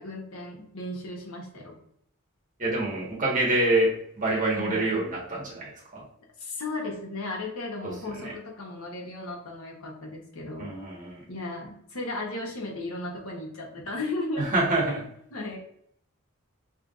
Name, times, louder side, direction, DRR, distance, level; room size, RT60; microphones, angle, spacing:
voice 1, 0.0-1.8 4.5-4.9 6.4-10.7 11.3-14.5 15.3-15.6, left 2 dB, 85° left, -1 dB, 1.3 m, -35 dB
voice 2, 2.6-6.0 7.8-7.9 8.2-8.3 10.6-11.2 14.4-15.1, right 2 dB, 40° right, -4 dB, 1.5 m, -26 dB
4.6 x 3.3 x 2.5 m, 0.71 s
head